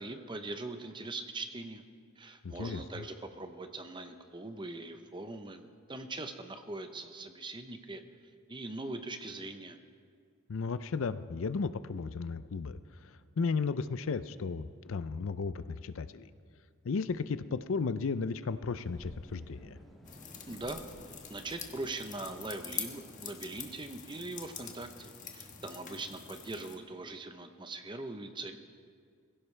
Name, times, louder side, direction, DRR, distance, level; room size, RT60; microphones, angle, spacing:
voice 1, 0.0-1.8 2.2-8.0 8.5-9.8 20.5-20.8 21.3-28.6, right 2 dB, 20° right, 7 dB, 0.7 m, -41 dB
voice 2, 2.4-2.8 10.5-12.8 13.0-16.3 16.8-19.8, left 4 dB, 65° left, 13 dB, 0.5 m, -34 dB
sound 1, 18.8-23.8, equal, ahead, 1.9 m, -55 dB
sound 2, 20.1-26.8, left 7 dB, 35° left, 1.2 m, -45 dB
22.0 x 16.0 x 3.3 m, 2.1 s
head